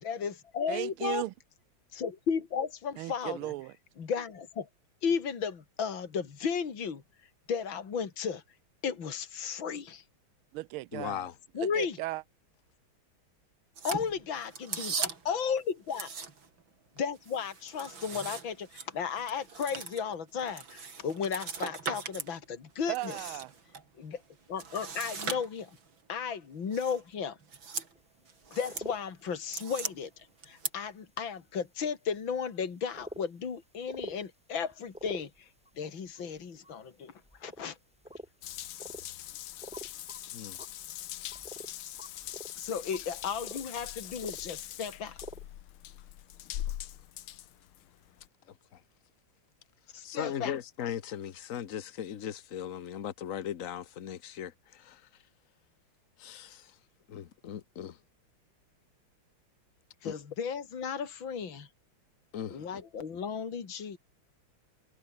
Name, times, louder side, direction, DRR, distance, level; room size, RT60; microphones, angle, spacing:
voice 1, 0.0-1.2 1.9-3.5 4.0-4.7 5.0-7.0 7.5-8.4 8.8-10.0 11.5-12.0 13.8-16.1 17.0-23.2 24.0-24.2 24.5-25.8 26.1-27.4 28.5-35.5 35.8-37.1 37.4-37.8 42.6-45.2 49.9-50.6 60.0-61.7 62.5-64.0, left 6 dB, 65° left, 3.2 m, -34 dB
voice 2, 0.7-1.3 3.0-3.7 10.5-11.3 11.6-12.2 22.9-23.5, right 18 dB, 85° right, 1.5 m, -36 dB
voice 3, 10.9-11.4 40.3-40.6 48.7-48.8 50.0-55.0 56.2-56.7 57.1-58.0 60.0-60.1 62.3-62.7, left 9 dB, 45° left, 1.3 m, -38 dB
sound 1, 13.8-15.4 15.9-16.6 17.0-22.3 22.7-23.8 24.6-25.9 26.7-27.0 27.4-27.9 28.3-28.9 29.3-29.9 30.4-30.7, right 5 dB, 65° right, 3.7 m, -39 dB
sound 2, 27.9-28.0 28.4-29.0 29.5-29.7 30.3-30.4 31.3-31.4 31.9-32.0 32.6-32.7 32.9-33.2 33.8-34.2 34.7-35.7 36.1-36.7 37.2-37.7 37.9-38.3 38.8-39.2 39.5-40.2 40.5-41.7 42.0-44.9 45.1-45.5, equal, 5° right, 7.8 m, -46 dB
Water tap faucet / Bathtub (filling or washing) / Drip, 38.4-48.3, left 13 dB, 85° left, 1.9 m, -42 dB
omnidirectional pair, 2.3 m